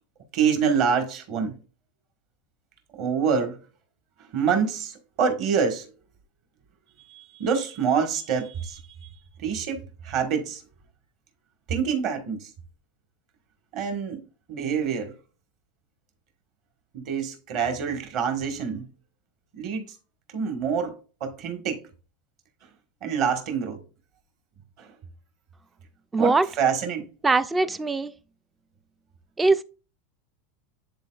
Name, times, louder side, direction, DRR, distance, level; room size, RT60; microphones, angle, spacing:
voice 1, 0.3-1.6 2.9-3.6 4.3-5.9 7.1-9.1 9.4-10.6 11.7-12.5 13.7-14.2 14.5-15.1 16.9-18.9 19.5-19.9 20.3-21.8 23.0-23.8 24.8-24.9 26.2-27.1, right 6 dB, 40° right, 1.5 m, -26 dB
voice 2, 26.1-26.5 27.2-28.1 29.4-29.6, right 3 dB, 10° right, 0.3 m, -21 dB
10.0 x 3.9 x 2.4 m
supercardioid pair, 165°, 0 cm